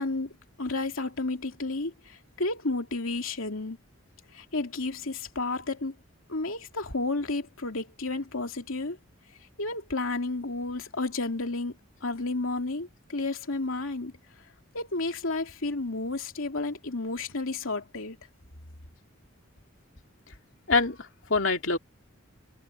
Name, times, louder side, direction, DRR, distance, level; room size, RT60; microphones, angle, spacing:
voice 1, 0.0-3.8 4.3-6.0 6.3-9.0 9.6-14.1 14.7-18.2, left 2 dB, 85° left, 2.6 m, -32 dB
voice 2, 20.7-21.8, left 3 dB, 65° left, 3.0 m, -25 dB
head